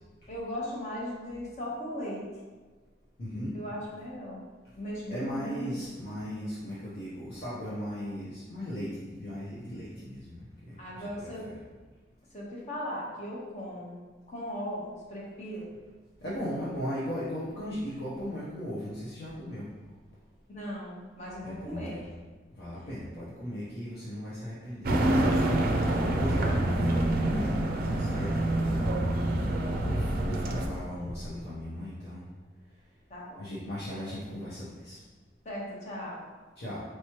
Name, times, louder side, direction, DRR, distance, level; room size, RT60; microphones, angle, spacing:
voice 1, 0.3-2.2 3.5-4.4 4.7-5.9 10.8-11.5 12.3-15.7 20.5-22.0 33.1-33.4 35.4-36.2, equal, 40° left, -5 dB, 1.0 m, -38 dB
voice 2, 3.2-3.5 5.1-11.6 16.2-19.7 21.4-22.1 22.6-24.9 25.9-28.9 29.8-32.2 33.4-35.0 36.6-36.8, equal, 60° left, -9 dB, 0.8 m, -37 dB
sound 1, 24.8-30.7, right 1 dB, 50° right, 0.4 m, -26 dB
4.6 x 3.1 x 2.9 m, 1.3 s
head